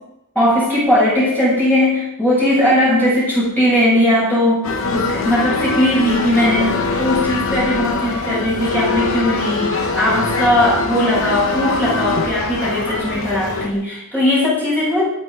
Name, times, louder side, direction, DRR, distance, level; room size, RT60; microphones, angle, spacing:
voice 1, 0.3-15.1, left 1 dB, 10° left, -8 dB, 8.0 m, -18 dB
sound 1, 4.6-13.7, left 3 dB, 90° left, 2.4 m, -22 dB
23.5 x 9.1 x 5.3 m, 0.85 s
head